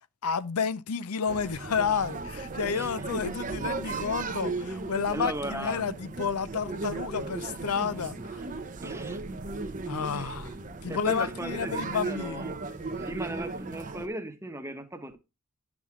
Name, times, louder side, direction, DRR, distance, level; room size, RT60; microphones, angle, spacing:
voice 1, 0.2-8.4 9.9-10.5 10.8-12.5, left 6 dB, 85° left, 0.6 m, -31 dB
sound 1, 1.3-14.1, right 3 dB, 35° right, 0.8 m, -36 dB
voice 2, 5.1-5.8 8.8-9.2 10.1-10.3 10.9-12.6 13.0-15.2, right 1 dB, 10° right, 1.0 m, -37 dB
11.0 x 6.0 x 3.6 m
head